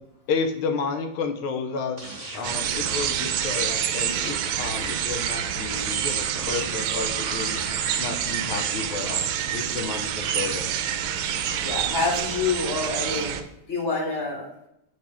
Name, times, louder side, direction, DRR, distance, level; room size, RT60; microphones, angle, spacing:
voice 1, 0.3-7.6 8.0-10.9, left 4 dB, 75° left, 6 dB, 1.5 m, -31 dB
sound 1, 2.0-2.5 2.8-3.2 3.5-5.2 5.7-6.7 7.2-8.1 8.5-8.7, right 1 dB, 25° right, 0.8 m, -40 dB
sound 2, 2.4-13.4, right 9 dB, 75° right, 1.3 m, -27 dB
voice 2, 11.5-13.3 13.7-14.5, left 4 dB, 35° left, -2 dB, 1.8 m, -27 dB
7.9 x 4.0 x 3.4 m, 0.80 s
omnidirectional pair, 2.4 m